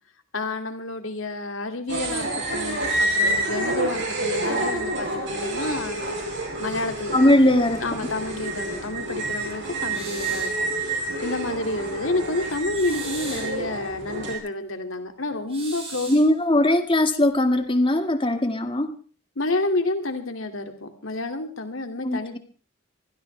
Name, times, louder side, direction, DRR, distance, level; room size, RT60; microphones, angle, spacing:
voice 1, 0.3-6.2 6.6-7.2 7.8-16.1 19.4-22.4, left 2 dB, 85° left, 6 dB, 2.4 m, -29 dB
sound 1, 1.9-14.4, right 1 dB, 65° right, 5.9 m, -28 dB
voice 2, 7.1-7.8 16.1-18.9 22.0-22.4, left 1 dB, 25° left, 7 dB, 1.8 m, -20 dB
sound 2, 9.9-10.6 12.7-13.6 15.5-16.3, right 3 dB, 30° right, 6.9 m, -38 dB
24.0 x 16.0 x 3.3 m, 0.39 s
head